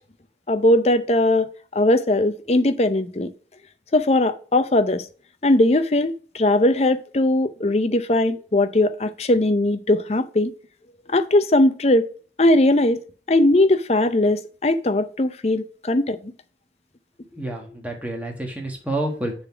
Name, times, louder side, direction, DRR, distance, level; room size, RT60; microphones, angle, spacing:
voice 1, 0.5-3.3 3.9-5.0 5.4-10.5 11.1-12.1 12.4-13.0 13.3-16.3, left 1 dB, 35° left, 0.6 m, -19 dB
voice 2, 17.3-19.3, right 1 dB, 10° right, 1.5 m, -29 dB
6.7 x 3.9 x 6.0 m
head